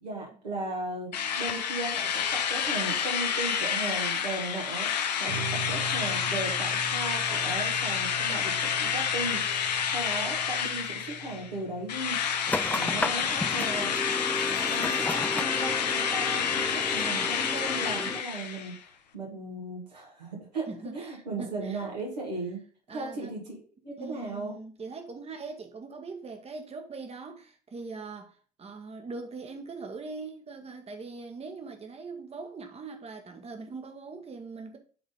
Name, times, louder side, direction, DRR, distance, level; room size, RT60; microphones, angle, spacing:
voice 1, 0.0-2.2 2.5-4.9 5.2-9.5 9.9-12.2 12.7-13.9 14.5-18.8 19.1-20.7 20.9-22.6 22.9-23.6 23.8-24.5, right 2 dB, 85° right, 1.9 m, -36 dB
Drill, 1.1-11.5 11.9-18.8, left 7 dB, 80° left, 0.7 m, -29 dB
sound 1, 5.3-12.9, right 1 dB, 70° right, 1.8 m, -42 dB
sound 2, 12.5-18.2, left 2 dB, 10° left, 0.5 m, -33 dB
voice 2, 20.7-21.9 22.9-23.4 24.0-34.8, right 4 dB, 30° right, 1.2 m, -41 dB
6.9 x 4.0 x 5.2 m
figure-of-eight pair, 50°, 21 cm